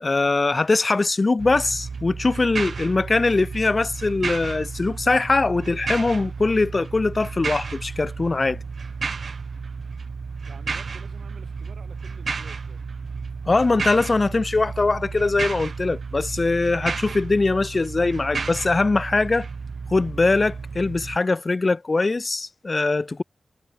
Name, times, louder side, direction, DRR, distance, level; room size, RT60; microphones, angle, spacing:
voice 1, 0.0-8.6 13.5-19.5 19.9-23.2, left 3 dB, 45° left, 0.3 m, -22 dB
sound 1, 1.4-21.2, right 5 dB, 70° right, 0.9 m, -32 dB
voice 2, 10.4-12.8, right 6 dB, 85° right, 3.5 m, -49 dB
cardioid pair, 50°, 0 cm